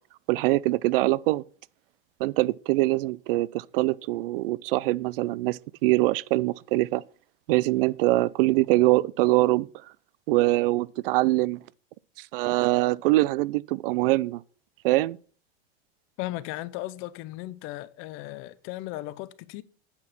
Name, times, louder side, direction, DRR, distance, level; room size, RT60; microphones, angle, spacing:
voice 1, 0.3-1.4 2.2-7.0 7.5-9.7 10.3-11.6 12.2-14.4 14.8-15.2, right 19 dB, 65° right, 0.4 m, -23 dB
voice 2, 16.2-19.6, left 17 dB, 45° left, 0.7 m, -36 dB
8.7 x 5.5 x 5.9 m
supercardioid pair, 140°, 30 cm